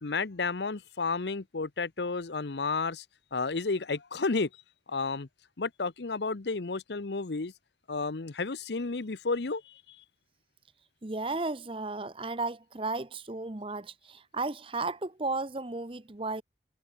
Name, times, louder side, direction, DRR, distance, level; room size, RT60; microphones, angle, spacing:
voice 1, 0.0-3.0 3.3-4.5 4.9-5.3 5.6-7.5 7.9-10.0, left 4 dB, 70° left, 0.8 m, -32 dB
voice 2, 11.0-16.4, right 3 dB, 30° right, 0.9 m, -34 dB
head